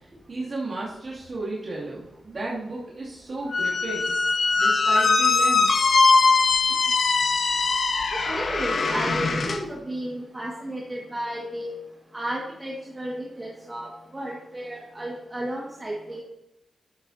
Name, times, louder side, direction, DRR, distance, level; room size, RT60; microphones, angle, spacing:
voice 1, 0.3-4.1 4.6-5.7, right 2 dB, 50° right, -7 dB, 2.7 m, -33 dB
Squeak, 3.5-9.6, left 4 dB, 65° left, 1.1 m, -21 dB
voice 2, 8.1-11.7 12.1-16.2, right 1 dB, 25° right, -3 dB, 2.0 m, -33 dB
12.0 x 8.2 x 2.8 m, 0.87 s
cardioid pair, 70°, 0 cm